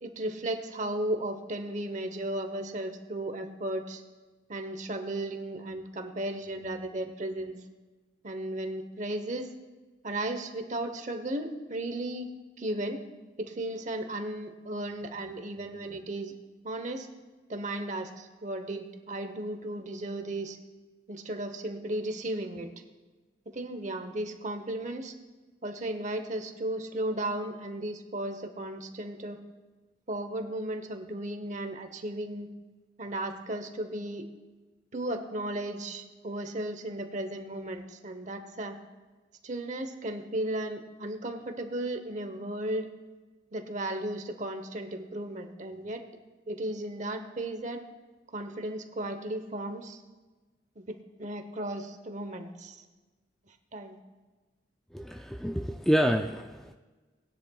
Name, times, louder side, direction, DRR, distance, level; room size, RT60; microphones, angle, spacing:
voice 1, 0.0-4.0 4.5-7.6 8.2-9.5 10.0-12.3 12.6-13.0 13.4-16.3 16.6-17.1 17.5-20.6 21.1-22.7 23.5-25.1 25.6-29.4 30.1-32.5 33.0-34.2 34.9-38.8 39.4-42.9 43.5-46.0 46.5-47.8 48.3-50.0 50.8-52.8 53.7-54.0, right 1 dB, 40° right, 7 dB, 0.9 m, -35 dB
voice 2, 54.9-56.7, equal, ahead, 4 dB, 0.3 m, -28 dB
19.0 x 10.0 x 2.3 m, 1.2 s
head